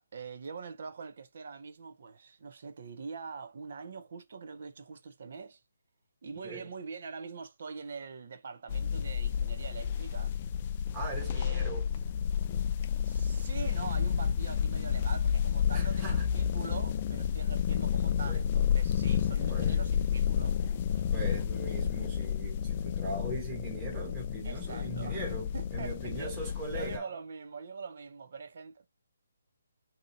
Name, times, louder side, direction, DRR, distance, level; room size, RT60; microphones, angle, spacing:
voice 1, 0.1-5.6 6.2-10.3 11.2-11.7 13.0-21.1 24.4-26.4 26.7-28.9, right 5 dB, 55° right, 0.6 m, -44 dB
sound 1, 8.7-27.0, left 8 dB, 35° left, 0.3 m, -30 dB
voice 2, 10.9-11.9 15.7-16.3 18.2-18.5 19.5-19.9 21.0-27.1, right 2 dB, 15° right, 1.2 m, -40 dB
2.8 x 2.7 x 4.0 m
figure-of-eight pair, 150°, 0 cm